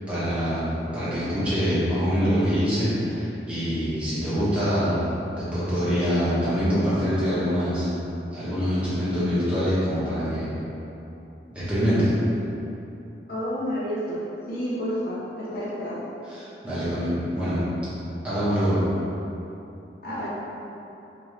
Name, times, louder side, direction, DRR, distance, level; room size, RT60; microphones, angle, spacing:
voice 1, 0.0-7.9 8.3-10.5 11.5-12.1 16.3-17.6 18.2-18.8, equal, 5° right, -14 dB, 1.3 m, -25 dB
voice 2, 13.3-14.2 14.5-16.0 20.0-20.3, equal, 55° left, -9 dB, 0.9 m, -30 dB
4.2 x 3.0 x 3.2 m, 3.0 s
head